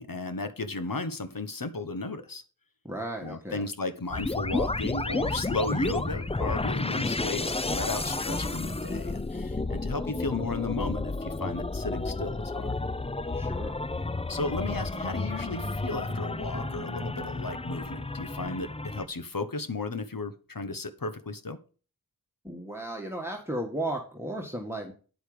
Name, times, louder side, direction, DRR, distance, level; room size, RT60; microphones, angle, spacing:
voice 1, 0.0-2.4 3.2-12.7 14.3-21.6, left 3 dB, 65° left, 10 dB, 1.2 m, -34 dB
voice 2, 2.8-3.7 13.3-13.8 22.4-24.9, right 1 dB, 5° right, 1 dB, 1.8 m, -35 dB
sound 1, 4.1-19.1, left 2 dB, 15° left, 0.5 m, -31 dB
sound 2, 14.5-19.0, right 4 dB, 55° right, 1.0 m, -47 dB
9.2 x 8.1 x 5.1 m, 0.38 s
wide cardioid pair, 45°, 36 cm